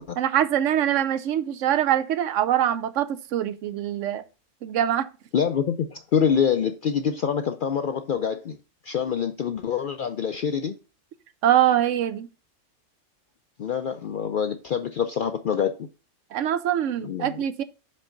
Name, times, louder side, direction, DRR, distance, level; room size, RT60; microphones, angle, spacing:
voice 1, 0.2-4.2 4.6-5.1 11.4-12.3 16.3-17.6, right 11 dB, 75° right, 0.9 m, -23 dB
voice 2, 5.3-8.6 8.8-10.8 13.6-15.9 17.0-17.4, left 7 dB, 65° left, 0.5 m, -25 dB
5.5 x 5.4 x 3.8 m
omnidirectional pair, 1.3 m